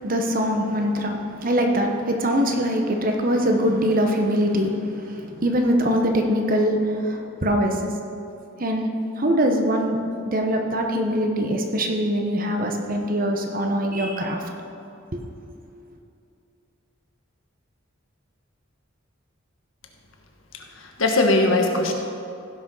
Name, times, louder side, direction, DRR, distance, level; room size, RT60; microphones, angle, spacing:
voice 1, 0.0-7.8 8.6-8.9 9.2-10.0 10.2-14.4 15.1-15.2, equal, 40° right, 3 dB, 1.1 m, -23 dB
voice 2, 20.5-21.9, left 2 dB, 70° left, 2 dB, 1.4 m, -21 dB
15.5 x 6.2 x 5.5 m, 2.6 s
head